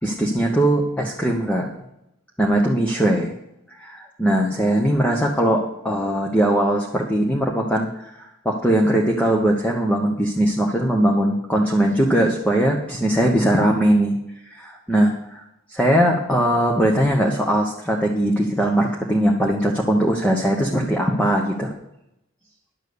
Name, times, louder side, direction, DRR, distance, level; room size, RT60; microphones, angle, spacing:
voice 1, 0.0-1.7 2.4-3.3 3.7-14.2 14.5-15.4 15.7-21.7, right 1 dB, 5° left, -1 dB, 1.1 m, -20 dB
11.0 x 7.4 x 6.8 m, 0.82 s
head